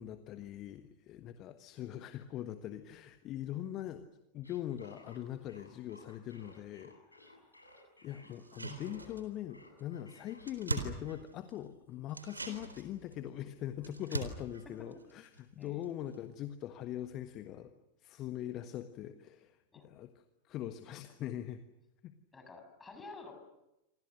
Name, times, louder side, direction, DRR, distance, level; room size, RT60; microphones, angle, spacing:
voice 1, 0.0-4.0 4.3-6.9 8.0-17.7 18.0-21.6 22.0-22.1, left 12 dB, 35° left, 9 dB, 1.4 m, -42 dB
sound 1, 4.4-9.2 9.5-10.5, left 1 dB, 85° left, 7.6 m, -58 dB
sound 2, 8.3-9.5 9.8-9.9 10.1-11.7 12.1-15.8 16.1-16.2, right 3 dB, 80° right, 4.0 m, -42 dB
voice 2, 22.3-23.3, left 3 dB, 15° left, 6 dB, 7.1 m, -50 dB
28.0 x 26.5 x 6.6 m, 0.92 s
figure-of-eight pair, 90°, 0 cm